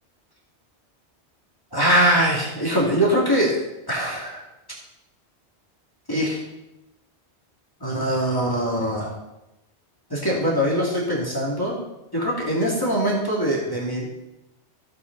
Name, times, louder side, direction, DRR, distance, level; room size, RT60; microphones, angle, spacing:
voice 1, 1.7-3.6 3.9-4.4 6.1-6.4 7.8-9.1 10.1-11.8 12.1-14.1, equal, 20° left, -6 dB, 2.6 m, -22 dB
15.0 x 8.1 x 4.1 m, 0.92 s
omnidirectional pair, 1.2 m